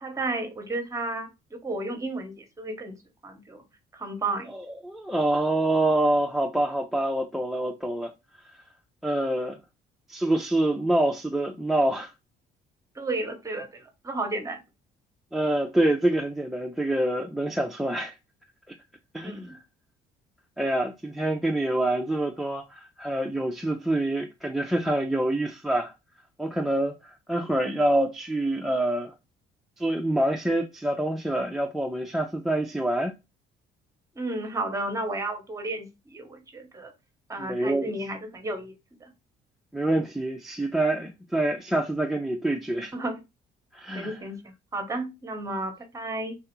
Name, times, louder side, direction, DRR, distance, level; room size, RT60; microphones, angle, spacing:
voice 1, 0.0-3.0 3.2-3.6 3.9-4.5 12.9-14.6 19.2-19.5 34.1-36.9 37.3-38.7 39.0-39.1 42.9-43.2 43.9-44.4 44.7-46.4, right 2 dB, 20° right, 0.8 m, -32 dB
voice 2, 4.5-8.1 9.0-9.6 10.1-12.1 15.3-18.1 19.1-19.6 20.6-25.9 26.4-29.1 29.8-33.1 37.4-37.9 39.7-42.9 43.7-44.1, right 1 dB, ahead, 0.3 m, -26 dB
3.3 x 2.3 x 2.9 m
cardioid pair, 110°, 17 cm